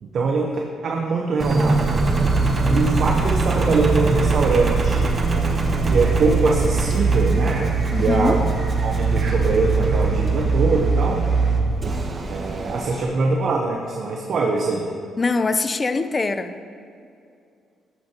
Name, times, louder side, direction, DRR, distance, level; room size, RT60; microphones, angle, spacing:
voice 1, 0.0-2.0 2.6-5.2 5.8-8.4 8.8-11.3 12.3-14.9, right 3 dB, 55° right, 0 dB, 1.0 m, -23 dB
Engine, 1.4-13.0, right 3 dB, 35° right, 1.1 m, -21 dB
voice 2, 7.9-8.4 15.2-16.6, left 3 dB, 30° left, 10 dB, 0.6 m, -23 dB
13.0 x 10.5 x 3.0 m, 2.4 s
cardioid pair, 90°, 0 cm